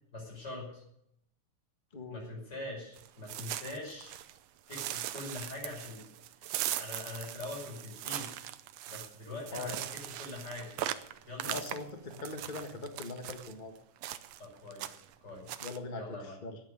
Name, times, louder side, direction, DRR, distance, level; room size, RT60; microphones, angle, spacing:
voice 1, 0.1-0.8 2.1-4.1 4.7-6.0 6.4-8.3 8.9-10.7 11.3-11.6 14.4-15.6 15.9-16.4, left 2 dB, 30° left, -2 dB, 6.5 m, -43 dB
voice 2, 1.9-2.3 9.5-9.7 11.4-13.7 15.6-16.6, left 3 dB, 85° left, 4 dB, 0.4 m, -41 dB
sound 1, 3.0-4.4 4.7-13.5 14.0-14.5 14.7-15.1 15.5-15.8, right 12 dB, 90° right, 1.4 m, -39 dB
11.5 x 9.3 x 10.0 m, 0.77 s
omnidirectional pair, 3.8 m